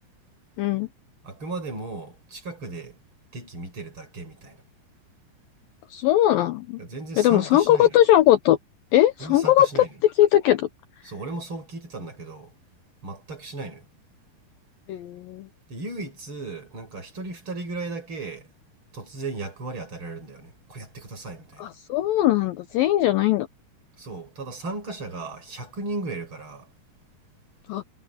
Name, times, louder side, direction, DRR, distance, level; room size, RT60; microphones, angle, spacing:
voice 1, 0.6-0.9 5.9-6.8 7.2-8.6 8.9-9.9 10.2-10.7 14.9-15.5 21.6-23.5 27.7-27.8, left 13 dB, 80° left, 2.1 m, -20 dB
voice 2, 1.2-3.0 3.3-4.6 6.8-7.9 9.2-9.9 11.0-12.5 13.0-13.9 15.7-18.5 18.9-21.7 24.0-26.7, right 2 dB, 30° right, 6.7 m, -36 dB
omnidirectional pair, 5.0 m